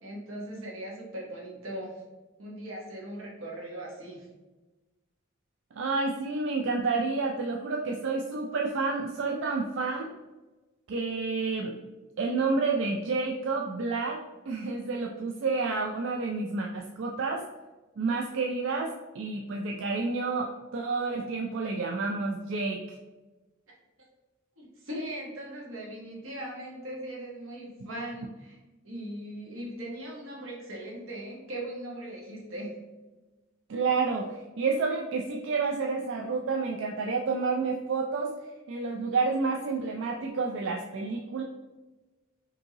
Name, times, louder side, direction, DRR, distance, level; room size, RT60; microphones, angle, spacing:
voice 1, 0.0-2.0 2.4-4.3 24.0-24.1 24.6-28.6 28.8-32.7, right 1 dB, 85° right, -2 dB, 1.2 m, -39 dB
voice 2, 5.8-10.1 10.9-11.7 12.2-17.5 18.0-23.0 33.7-38.3 38.7-41.4, right 4 dB, 60° right, 1 dB, 0.4 m, -29 dB
5.2 x 2.8 x 2.8 m, 1.2 s
head